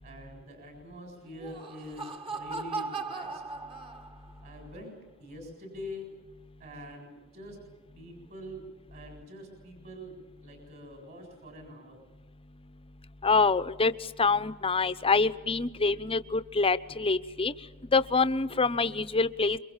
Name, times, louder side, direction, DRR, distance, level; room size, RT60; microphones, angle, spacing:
voice 1, 0.0-3.4 4.4-6.0 6.6-7.6 7.9-8.6 8.9-10.1 10.4-12.0, left 1 dB, 45° right, 3 dB, 7.5 m, -45 dB
Laughter, 1.3-4.4, right 4 dB, 25° right, 1.7 m, -38 dB
voice 2, 13.2-13.9 14.2-17.5 17.9-19.6, left 4 dB, 25° left, 13 dB, 0.9 m, -25 dB
28.0 x 23.5 x 7.3 m, 1.1 s
head